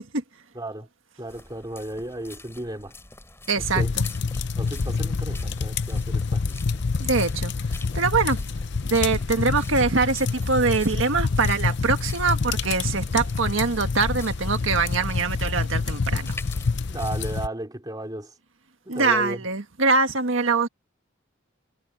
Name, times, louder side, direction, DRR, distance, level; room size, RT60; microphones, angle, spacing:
voice 1, 0.5-0.9 1.2-2.9 3.6-3.9 4.6-6.6 16.9-18.3 18.8-19.4, right 1 dB, 20° right, 2.9 m, -34 dB
sound 1, 1.3-17.4, left 2 dB, 10° left, 6.6 m, -46 dB
voice 2, 3.5-4.0 7.0-7.5 8.0-8.4 8.8-16.4 18.9-20.7, right 4 dB, 75° right, 1.6 m, -23 dB
sound 2, 3.6-17.5, left 4 dB, 60° left, 0.6 m, -27 dB
head